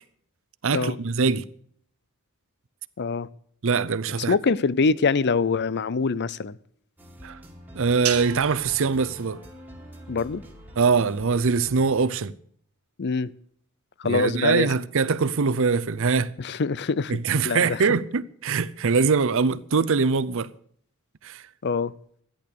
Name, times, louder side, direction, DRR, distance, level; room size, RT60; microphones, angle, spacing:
voice 1, 0.6-1.4 3.6-4.3 7.2-7.4 7.7-9.4 10.8-12.3 14.0-16.3 17.1-20.5 21.2-21.4, right 5 dB, 60° right, 0.6 m, -23 dB
voice 2, 3.0-3.3 4.3-6.6 10.1-10.4 13.0-13.3 14.0-14.7 16.4-17.1 17.4-17.9 21.6-21.9, left 4 dB, 50° left, 0.5 m, -24 dB
sound 1, 7.0-12.1, equal, 10° right, 2.1 m, -46 dB
sound 2, 8.0-10.5, right 10 dB, 85° right, 1.5 m, -36 dB
14.0 x 10.5 x 6.7 m
head